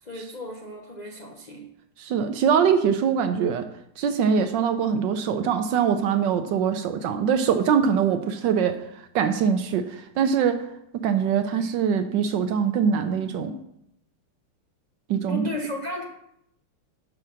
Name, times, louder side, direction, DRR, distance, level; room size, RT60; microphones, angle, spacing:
voice 1, 0.0-1.7 15.2-16.0, left 1 dB, 50° left, -1 dB, 0.5 m, -34 dB
voice 2, 2.0-3.7 4.0-8.8 9.1-10.6 10.9-13.6 15.1-15.5, right 7 dB, 75° right, 8 dB, 1.2 m, -23 dB
6.5 x 5.7 x 6.2 m, 0.76 s
omnidirectional pair, 2.3 m